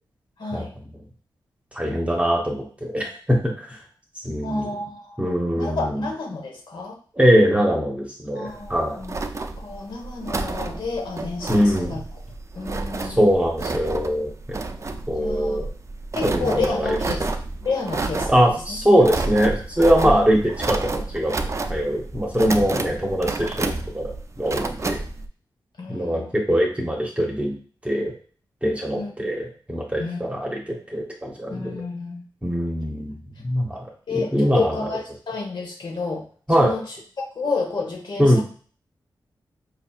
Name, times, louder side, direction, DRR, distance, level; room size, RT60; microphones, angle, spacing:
voice 1, 0.4-0.7 4.4-7.0 8.3-9.2 9.6-12.0 12.5-13.3 15.1-15.7 16.1-17.2 17.6-19.1 20.0-20.3 22.3-22.8 25.8-26.3 28.9-29.3 30.0-30.2 31.5-32.2 33.7-33.8 34.1-36.2 36.6-37.0 37.3-38.4, left 3 dB, 65° left, 1 dB, 1.2 m, -30 dB
voice 2, 1.7-3.8 4.2-4.6 5.2-6.0 7.2-9.0 11.5-11.9 13.0-14.6 15.1-15.7 16.2-17.0 18.3-20.4 20.7-21.3 21.7-25.0 25.9-27.5 27.8-28.1 28.6-31.8 32.4-33.2 33.4-33.9 34.1-34.7 36.5-36.8 38.2-38.4, equal, 15° right, -1 dB, 1.0 m, -22 dB
sound 1, 8.5-25.3, right 3 dB, 35° right, 0.4 m, -30 dB
5.1 x 2.7 x 2.4 m, 0.43 s
cardioid pair, 65°, 8 cm